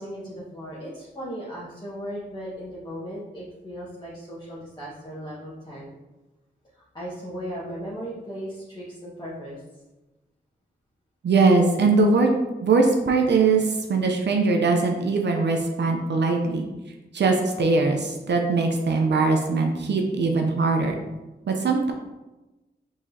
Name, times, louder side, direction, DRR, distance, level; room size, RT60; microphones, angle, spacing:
voice 1, 0.0-5.9 6.7-9.6, equal, 25° left, -9 dB, 1.3 m, -37 dB
voice 2, 11.2-12.3 12.6-16.7 17.1-20.9 21.5-21.9, right 3 dB, 65° right, 2 dB, 0.6 m, -21 dB
4.7 x 3.6 x 2.7 m, 1.1 s
cardioid pair, 45°, 19 cm